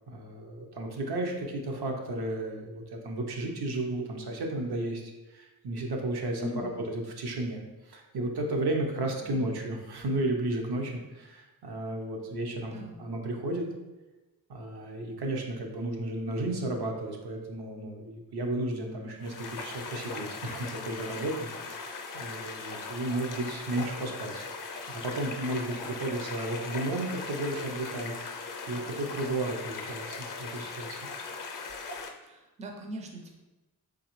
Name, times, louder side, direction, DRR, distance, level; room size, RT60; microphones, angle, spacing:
voice 1, 0.1-6.5 6.9-13.7 14.5-24.5 24.9-31.0, right 1 dB, 75° right, 1 dB, 0.8 m, -33 dB
voice 2, 6.4-6.9 9.2-9.5 12.6-13.0 32.2-33.4, equal, 20° right, 2 dB, 0.4 m, -41 dB
sound 1, 19.2-32.1, left 4 dB, 50° left, 0.5 m, -39 dB
3.8 x 3.2 x 3.0 m, 1.1 s
wide cardioid pair, 115°, 40 cm